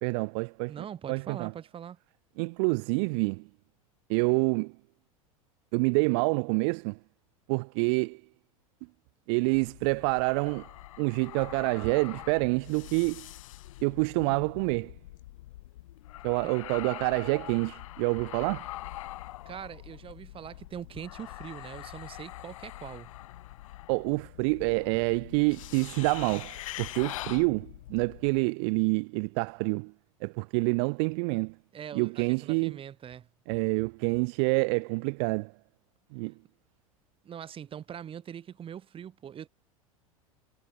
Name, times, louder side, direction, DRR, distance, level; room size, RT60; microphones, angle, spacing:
voice 1, 0.0-0.7 1.1-1.5 2.4-3.5 4.1-4.7 5.7-7.0 7.5-8.2 9.3-10.7 11.0-13.3 13.8-14.9 16.2-18.7 23.9-29.9 30.2-31.5 31.9-32.8 33.5-35.5 36.1-36.3, right 34 dB, 50° right, 0.5 m, -27 dB
voice 2, 0.7-2.0 19.5-23.1 31.7-33.3 37.2-39.5, right 9 dB, 30° right, 3.8 m, -42 dB
sound 1, 9.5-28.4, left 15 dB, 65° left, 3.1 m, -44 dB
figure-of-eight pair, 85°, 18 cm